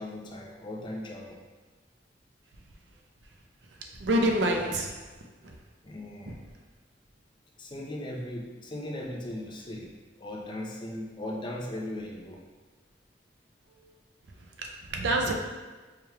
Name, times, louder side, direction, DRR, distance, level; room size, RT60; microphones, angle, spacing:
voice 1, 0.0-1.4 5.8-6.4 7.6-9.9 10.2-12.4, left 1 dB, 25° left, -1 dB, 0.5 m, -38 dB
voice 2, 3.8-5.0 5.4-5.6 13.8-13.9 14.6-15.3, right 1 dB, 65° right, 1 dB, 0.5 m, -27 dB
4.6 x 3.1 x 2.3 m, 1.3 s
head